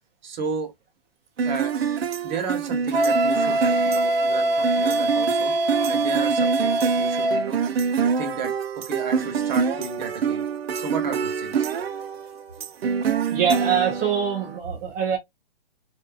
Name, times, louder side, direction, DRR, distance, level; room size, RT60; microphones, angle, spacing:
voice 1, 0.2-0.7 1.4-1.7 2.2-5.5 5.9-7.6 8.0-10.4 10.8-11.7, right 4 dB, 50° right, 1.1 m, -33 dB
sound 1, 1.4-14.6, right 6 dB, 90° right, 0.5 m, -26 dB
Wind instrument woodwind instrument, 2.9-7.5, right 1 dB, 70° right, 0.9 m, -23 dB
voice 2, 13.3-15.2, right 7 dB, 20° right, 0.4 m, -23 dB
2.6 x 2.5 x 2.3 m
hypercardioid pair, 155°, 30 cm